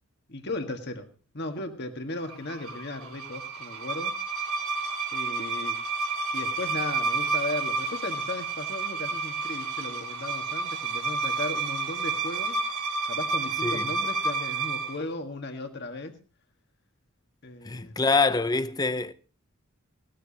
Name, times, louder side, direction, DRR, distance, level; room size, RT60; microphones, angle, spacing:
voice 1, 0.3-4.1 5.1-5.9 6.3-12.6 13.1-16.2 17.4-18.0, left 2 dB, 50° left, 1.7 m, -36 dB
sound 1, 2.3-15.0, right 3 dB, 85° right, 2.8 m, -30 dB
voice 2, 17.6-19.1, left 3 dB, 20° left, 0.6 m, -25 dB
18.0 x 13.5 x 2.8 m
head